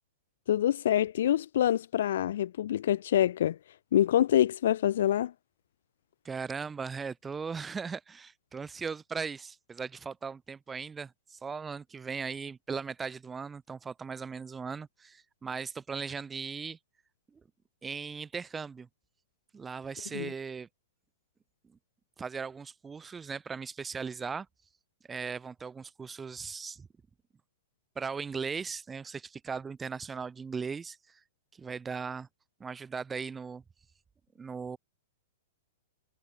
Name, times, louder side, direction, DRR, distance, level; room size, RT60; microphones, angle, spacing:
voice 1, 0.5-3.6 3.9-5.3 20.1-20.3, left 11 dB, 70° left, 1.1 m, -26 dB
voice 2, 6.2-16.8 17.3-17.4 17.8-18.9 19.5-20.7 22.2-24.5 25.1-26.9 28.0-31.0 31.6-32.3 32.6-33.6 34.4-34.8, right 5 dB, 15° right, 7.0 m, -38 dB
hypercardioid pair, 120°, 0 cm